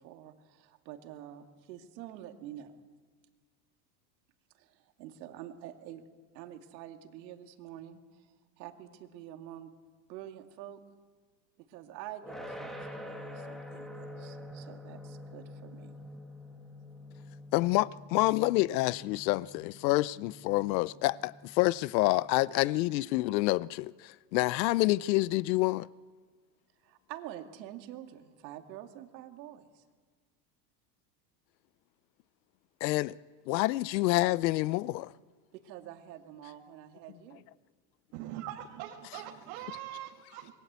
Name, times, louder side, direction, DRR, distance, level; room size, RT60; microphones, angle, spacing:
voice 1, 0.0-2.8 4.5-6.0 6.3-9.7 10.1-10.8 11.6-16.0 26.8-29.8 35.5-37.5, right 12 dB, 80° right, 2.5 m, -47 dB
sound 1, 12.2-23.2, left 1 dB, ahead, 1.9 m, -47 dB
voice 2, 17.5-25.9 32.8-33.2 33.5-35.1, left 19 dB, 85° left, 0.7 m, -28 dB
voice 3, 38.1-40.5, right 12 dB, 55° right, 2.1 m, -42 dB
26.5 x 22.5 x 8.2 m
supercardioid pair, 160°, 50 cm